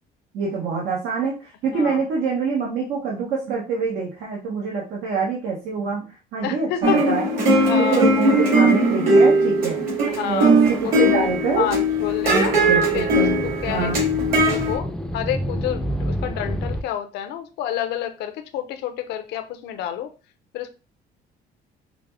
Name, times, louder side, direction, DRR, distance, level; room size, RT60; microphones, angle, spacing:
voice 1, 0.3-7.2 7.8-9.8 10.2-11.7 12.4-13.4 13.7-14.1, right 5 dB, 80° right, -3 dB, 1.0 m, -26 dB
voice 2, 6.4-7.1 7.6-8.5 10.1-11.3 11.6-12.5 12.9-20.1 20.5-20.7, left 10 dB, 80° left, 7 dB, 0.5 m, -29 dB
sound 1, 6.8-14.8, right 1 dB, 60° right, 2.0 m, -19 dB
sound 2, 10.3-16.8, equal, 5° left, 0.4 m, -30 dB
5.0 x 2.1 x 3.3 m, 0.32 s
cardioid pair, 110°, 17 cm